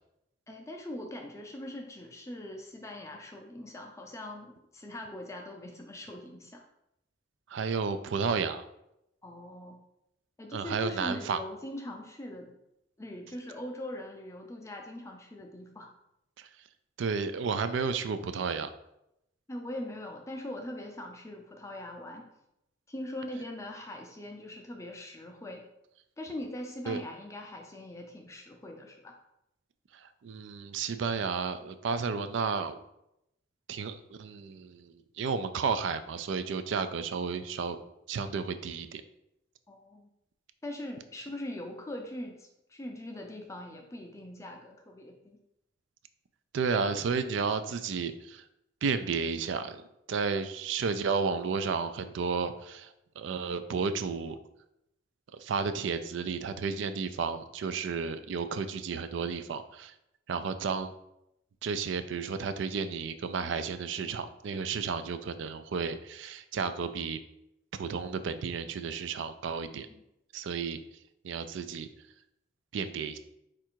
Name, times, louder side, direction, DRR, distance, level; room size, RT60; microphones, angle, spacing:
voice 1, 0.5-6.6 9.2-9.8 10.4-12.5 13.0-15.9 19.5-22.3 22.9-25.7 26.2-29.2 39.7-40.1 40.6-45.4 69.9-70.0, left 1 dB, 15° left, 2 dB, 0.4 m, -41 dB
voice 2, 7.5-8.6 10.5-11.4 16.4-16.5 17.0-18.7 26.9-27.0 29.9-32.8 33.7-37.8 38.1-39.0 46.5-48.4 48.8-54.4 55.4-59.9 60.3-60.9 61.6-67.2 67.8-69.9 70.3-70.8 71.2-71.9 72.7-73.2, right 5 dB, 70° right, 11 dB, 0.3 m, -32 dB
4.5 x 2.5 x 4.4 m, 0.84 s
head